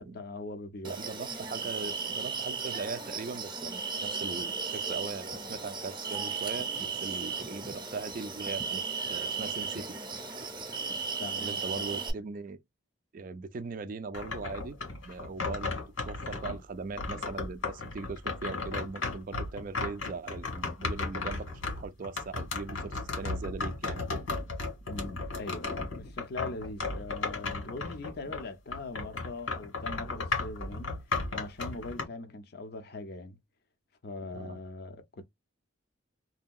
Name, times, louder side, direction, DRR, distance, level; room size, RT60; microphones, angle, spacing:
voice 1, 0.0-0.9 10.9-11.5 11.7-11.9 24.9-30.9 31.3-33.4 34.0-35.3, left 2 dB, 50° left, 0.5 m, -41 dB
sound 1, 0.8-12.1, right 5 dB, 25° right, 0.7 m, -35 dB
voice 2, 0.8-8.8 9.1-9.9 11.4-12.6 13.1-14.8 15.0-24.2 28.3-28.4 34.3-34.6, right 4 dB, 40° right, 0.3 m, -40 dB
sound 2, 14.1-16.6 17.0-28.5 28.7-32.0, left 3 dB, 85° left, 1.7 m, -35 dB
2.8 x 2.7 x 2.2 m
head